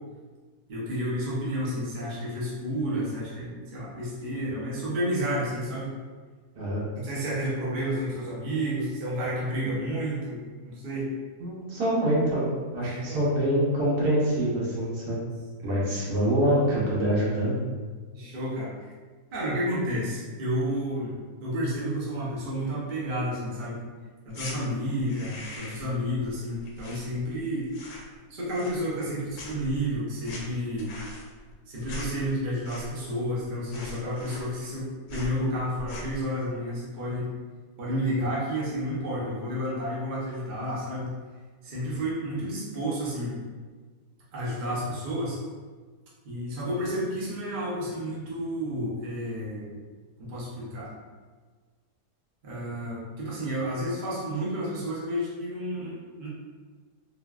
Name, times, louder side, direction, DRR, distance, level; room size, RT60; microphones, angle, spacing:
voice 1, 0.7-5.9 6.9-11.1 12.8-13.2 15.6-15.9 18.1-18.9 19.3-21.1 21.4-23.8 24.2-27.7 28.3-30.9 31.7-37.3 37.8-41.1 41.6-43.4 44.3-45.4 46.2-49.7 50.2-50.9 52.4-56.3, equal, 45° right, -7 dB, 0.6 m, -31 dB
voice 2, 6.5-6.9 11.4-12.4 12.7-15.2 15.6-17.5, right 1 dB, 75° right, -7 dB, 1.4 m, -25 dB
sound 1, 24.3-24.6 25.0-26.0 26.2-27.4 27.7-28.2 28.5-29.1 29.3-33.1 33.4-33.5 33.7-34.8 35.1-35.4 35.8-36.2, left 1 dB, 70° left, 1.0 m, -41 dB
3.3 x 2.2 x 2.3 m, 1.4 s
omnidirectional pair, 1.7 m